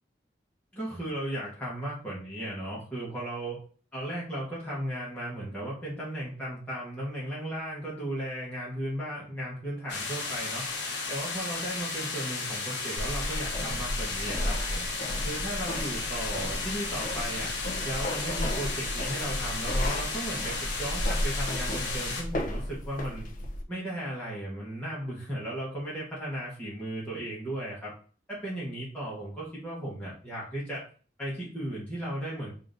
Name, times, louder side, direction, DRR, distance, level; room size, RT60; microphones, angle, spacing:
voice 1, 0.7-3.6 3.9-10.6 11.1-14.9 15.2-17.5 17.8-23.3 23.7-27.9 28.3-30.8 31.2-32.5, right 1 dB, 10° left, -8 dB, 1.0 m, -36 dB
sound 1, 9.9-22.2, left 3 dB, 75° left, 0.9 m, -34 dB
sound 2, 13.0-23.6, left 1 dB, 45° left, 0.5 m, -33 dB
5.0 x 2.6 x 2.6 m, 0.41 s
head